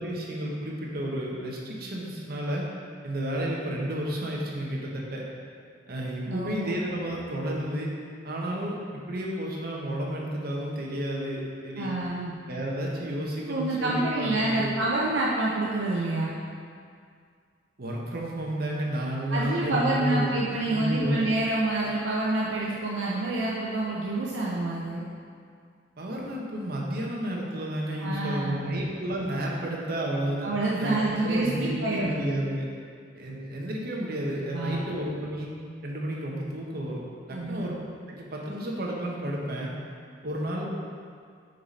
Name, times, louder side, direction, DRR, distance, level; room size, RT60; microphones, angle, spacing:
voice 1, 0.0-2.7 3.0-5.2 5.9-7.9 8.2-11.9 12.5-14.8 17.8-20.3 20.7-21.2 26.0-30.5 30.8-32.7 33.1-35.5 35.8-37.0 37.3-37.8 38.1-39.7 40.2-40.7, right 1 dB, 55° right, -2 dB, 1.0 m, -31 dB
voice 2, 11.8-12.3 13.5-16.4 19.3-25.0 28.0-28.8 30.4-32.1 34.5-35.0 37.3-37.7, right 2 dB, 75° right, -5 dB, 0.7 m, -27 dB
6.5 x 4.1 x 4.2 m, 2.2 s
head